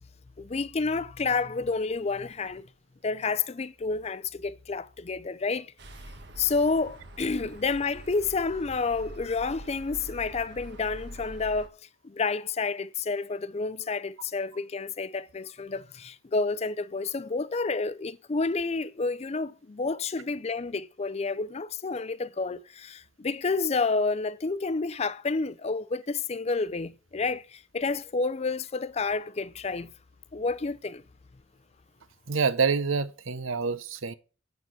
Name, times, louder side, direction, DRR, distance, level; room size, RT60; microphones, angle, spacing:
voice 1, 0.4-2.7 3.0-5.7 6.4-11.7 12.0-29.9 30.3-31.0, left 4 dB, 30° left, 0.5 m, -30 dB
sound 1, 5.8-11.7, equal, 60° right, 1.4 m, -44 dB
voice 2, 32.3-34.2, right 5 dB, 85° right, 0.8 m, -27 dB
8.1 x 7.2 x 5.7 m
head